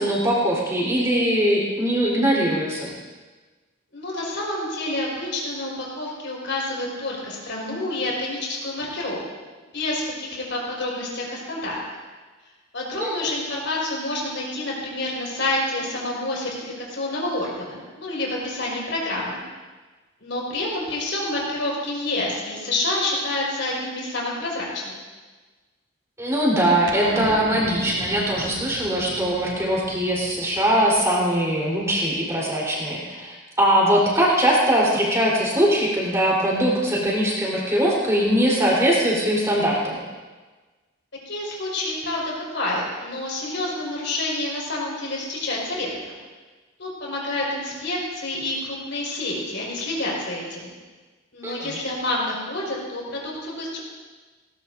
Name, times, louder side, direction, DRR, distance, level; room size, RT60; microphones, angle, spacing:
voice 1, 0.0-2.9 13.0-13.3 26.2-39.9 51.4-51.8, equal, 15° right, -5 dB, 3.9 m, -21 dB
voice 2, 3.9-9.2 9.7-11.8 12.7-19.4 20.2-24.9 41.3-46.2 46.8-50.7 51.3-53.8, left 2 dB, 70° left, -4 dB, 5.2 m, -28 dB
sound 1, 26.9-31.6, right 2 dB, 80° right, 1.1 m, -35 dB
19.5 x 18.5 x 2.7 m, 1.3 s
head